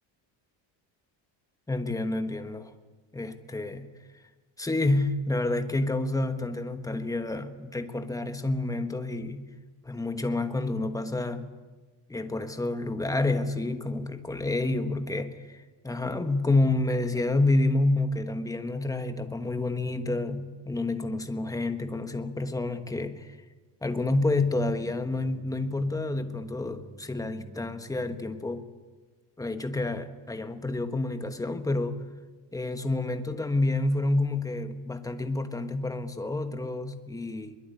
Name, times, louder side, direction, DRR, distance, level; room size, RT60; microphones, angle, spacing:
voice 1, 1.7-2.7 3.1-3.9 4.6-9.5 9.8-11.5 12.1-23.4 23.8-28.7 29.4-32.0 32.5-37.6, left 2 dB, 5° left, 1.3 m, -29 dB
22.5 x 21.5 x 9.4 m
cardioid pair, 165°, 48 cm